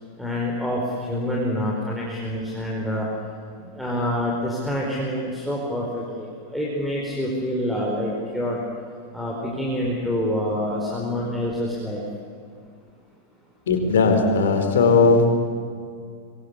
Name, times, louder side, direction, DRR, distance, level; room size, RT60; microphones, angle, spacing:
voice 1, 0.2-3.1 3.6-8.6 9.1-12.0, left 1 dB, ahead, -4 dB, 4.9 m, -27 dB
voice 2, 13.7-15.3, left 4 dB, 60° left, 5 dB, 4.3 m, -17 dB
26.0 x 23.5 x 8.6 m, 2.2 s
figure-of-eight pair, 90°, 0 cm